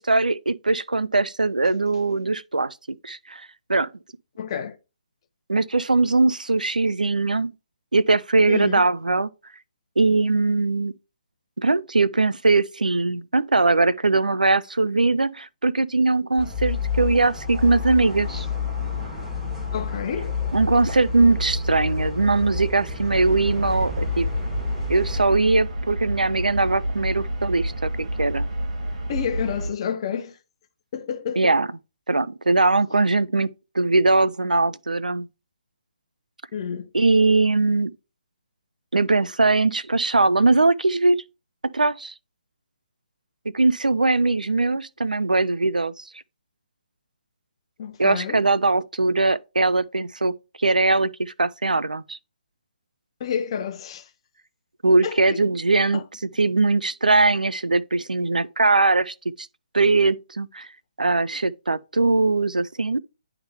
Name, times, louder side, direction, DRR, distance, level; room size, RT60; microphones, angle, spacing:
voice 1, 0.0-2.7 3.0-3.9 5.5-7.5 7.9-9.3 10.0-10.9 11.6-18.5 20.5-24.3 24.9-28.5 31.4-31.7 32.1-35.3 36.9-37.9 38.9-41.2 41.7-42.1 43.5-46.0 48.0-52.2 54.8-56.0 56.4-59.5 59.7-60.7 61.0-63.0, right 3 dB, 90° right, 0.4 m, -21 dB
voice 2, 4.4-4.8 8.5-8.9 18.3-18.4 19.7-20.3 29.1-30.4 30.9-31.5 36.5-36.9 47.8-48.4 53.2-54.1 55.0-55.2 55.9-56.0, left 7 dB, 40° left, 0.8 m, -29 dB
sound 1, 16.4-25.2, left 4 dB, 5° right, 2.6 m, -29 dB
sound 2, 23.1-29.7, right 1 dB, 50° right, 3.2 m, -29 dB
10.5 x 3.6 x 3.3 m
figure-of-eight pair, 140°, 4 cm